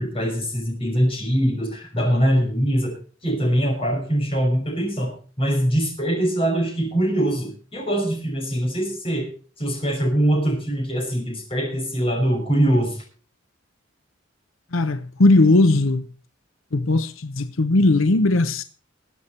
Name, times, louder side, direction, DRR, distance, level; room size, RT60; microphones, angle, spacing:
voice 1, 0.0-2.9 3.2-5.1 5.4-9.3 9.6-13.0, equal, 30° left, 5.7 m, -22 dB
voice 2, 14.7-16.1 16.7-18.6, left 2 dB, 85° left, 0.8 m, -18 dB
22.0 x 8.3 x 4.3 m
head